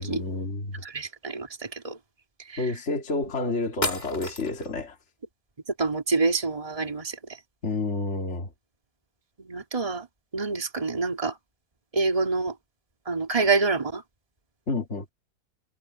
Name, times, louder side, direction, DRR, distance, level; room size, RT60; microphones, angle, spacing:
voice 1, 0.0-0.8 2.6-5.0 7.6-8.5 14.7-15.1, left 3 dB, 40° left, 2.8 m, -29 dB
voice 2, 0.8-2.0 2.5-2.7 5.8-7.2 9.4-10.1 10.3-11.3 11.9-12.5 13.1-14.0, right 4 dB, 20° right, 2.5 m, -27 dB
sound 1, 3.2-3.3 3.8-4.7, left 2 dB, 25° left, 2.8 m, -31 dB
omnidirectional pair, 1.9 m